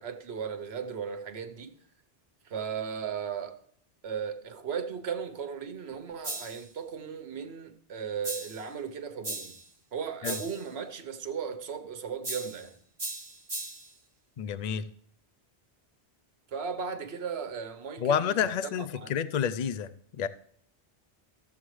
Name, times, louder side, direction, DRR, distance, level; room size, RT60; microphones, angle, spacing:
voice 1, 0.0-1.7 2.5-3.6 4.0-9.6 9.9-12.8 16.5-18.5 18.8-19.1, right 6 dB, 70° right, 1.1 m, -36 dB
sound 1, 6.2-6.7 8.2-8.7 9.2-9.7 10.2-10.7 12.2-12.7 13.0-13.9, right 2 dB, 20° right, 1.4 m, -37 dB
voice 2, 14.4-14.8 18.0-20.3, left 8 dB, 50° left, 0.5 m, -29 dB
14.5 x 7.2 x 3.2 m
omnidirectional pair, 1.1 m